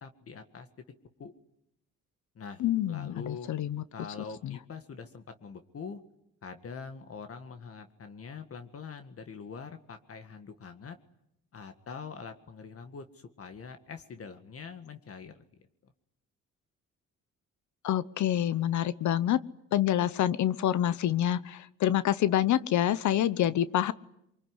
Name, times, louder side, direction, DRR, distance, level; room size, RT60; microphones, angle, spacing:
voice 1, 0.0-0.7 1.2-1.3 2.4-3.5 3.9-6.0 6.4-11.0 11.5-15.4 15.8-15.9, left 5 dB, 50° left, 8 dB, 1.8 m, -44 dB
voice 2, 2.6-3.8 4.4-4.5 17.8-19.4 19.7-23.9, left 11 dB, 70° left, 17 dB, 1.0 m, -27 dB
24.0 x 23.5 x 9.7 m, 0.81 s
cardioid pair, 90°, 30 cm